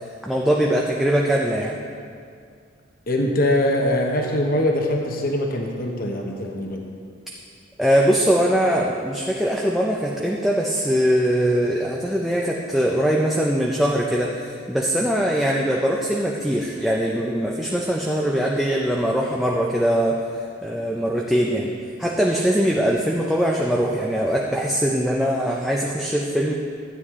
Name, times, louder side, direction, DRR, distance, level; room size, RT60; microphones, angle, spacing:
voice 1, 0.2-1.8 7.8-20.2 20.6-21.7 22.0-26.5, equal, ahead, -3 dB, 0.5 m, -21 dB
voice 2, 3.1-6.9, left 1 dB, 45° left, 1 dB, 1.0 m, -22 dB
12.5 x 9.3 x 3.7 m, 2.3 s
head